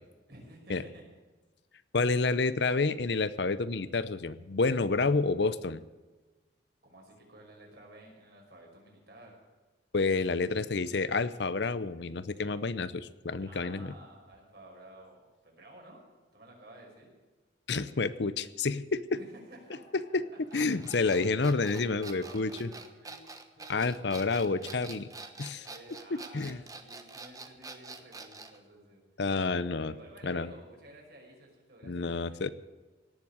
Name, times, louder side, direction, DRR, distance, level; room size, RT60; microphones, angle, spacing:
voice 1, 0.3-1.0 6.8-9.4 13.4-16.0 16.3-17.1 19.2-20.0 20.3-20.4 20.9-21.3 21.8-23.3 23.6-29.0 29.8-32.5, right 1 dB, 55° right, -1 dB, 5.6 m, -53 dB
voice 2, 1.9-5.8 9.9-13.9 17.7-19.1 20.5-22.7 23.7-25.1 25.4-25.7 26.1-26.6 29.2-30.0 30.2-30.5 31.8-32.5, left 3 dB, 65° left, 15 dB, 0.7 m, -29 dB
sound 1, 20.5-28.6, right 3 dB, 20° right, 1.1 m, -46 dB
18.0 x 7.4 x 9.7 m, 1.3 s
head